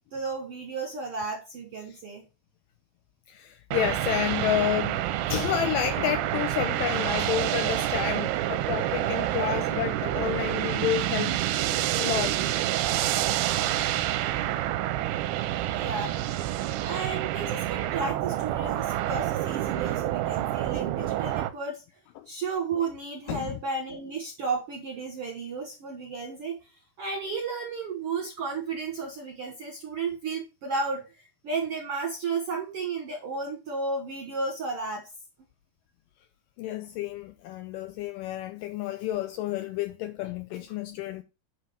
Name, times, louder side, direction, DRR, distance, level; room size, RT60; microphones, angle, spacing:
voice 1, 0.1-2.2 15.7-16.2 16.8-21.8 22.2-26.6 27.0-35.0, right 4 dB, 65° right, 1.4 m, -33 dB
voice 2, 3.3-11.4 11.7-12.4 22.2-22.3 23.3-23.6 36.6-41.2, left 12 dB, 85° left, 1.9 m, -30 dB
sound 1, 3.7-21.5, right 14 dB, 85° right, 2.5 m, -28 dB
9.3 x 3.2 x 6.6 m
omnidirectional pair, 4.4 m